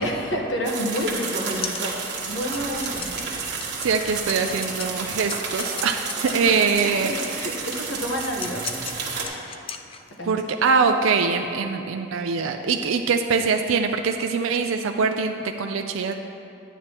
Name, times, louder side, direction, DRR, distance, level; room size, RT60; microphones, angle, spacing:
voice 1, 0.0-1.9 2.2-3.1 6.4-6.6 6.8-7.0 7.3-8.6 10.2-10.3, equal, 65° left, 1 dB, 1.1 m, -29 dB
sound 1, 0.6-9.3, right 4 dB, 55° right, 1.4 m, -31 dB
sound 2, 0.7-7.0 7.7-10.3, left 7 dB, 25° left, 0.3 m, -37 dB
voice 2, 3.8-7.5 10.2-16.1, right 5 dB, 85° right, 5 dB, 0.4 m, -23 dB
11.0 x 9.1 x 2.9 m, 2.9 s
head